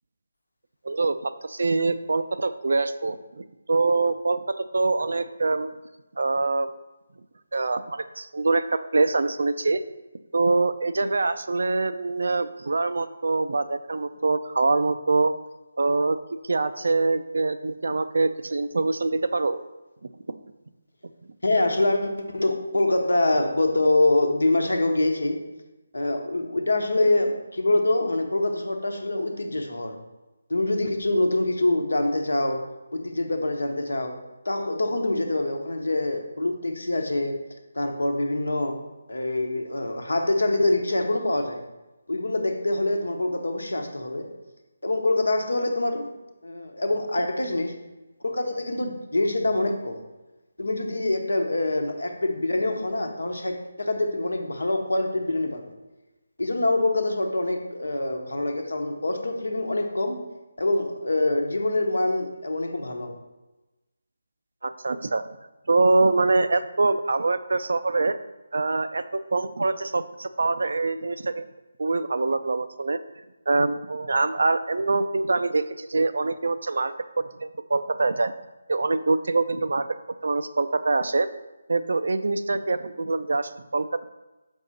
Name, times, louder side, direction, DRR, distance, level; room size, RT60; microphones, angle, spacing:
voice 1, 0.8-5.7 6.2-6.7 7.5-9.8 10.3-15.3 15.8-16.2 16.4-19.6 64.6-65.3 65.7-68.2 68.5-69.0 69.3-71.5 71.8-73.0 73.5-78.3 78.7-79.9 80.2-81.3 81.7-84.1, right 3 dB, 70° right, 12 dB, 0.4 m, -24 dB
voice 2, 21.4-25.5 25.9-30.0 30.5-34.2 34.4-37.4 37.7-38.8 39.1-41.6 42.1-44.3 44.8-46.1 46.4-47.8 48.2-50.0 50.6-55.7 56.4-60.2 60.6-63.2, left 2 dB, 80° left, 5 dB, 1.0 m, -25 dB
6.3 x 5.3 x 4.0 m, 1.1 s
figure-of-eight pair, 155°, 0 cm